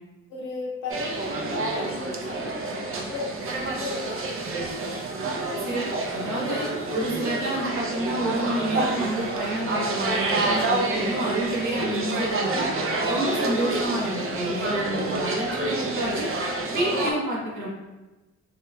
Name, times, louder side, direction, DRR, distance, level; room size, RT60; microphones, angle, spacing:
voice 1, 0.3-4.9 10.8-11.1 13.0-13.3 15.0-15.4, left 3 dB, 90° left, -3 dB, 0.9 m, -37 dB
sound 1, 0.9-17.1, right 2 dB, 45° right, 0.5 m, -28 dB
voice 2, 5.6-6.7 6.9-12.7 13.1-16.3 16.7-17.7, right 1 dB, 85° right, -5 dB, 1.2 m, -29 dB
3.1 x 3.0 x 2.2 m, 1.1 s
cardioid pair, 90°, 30 cm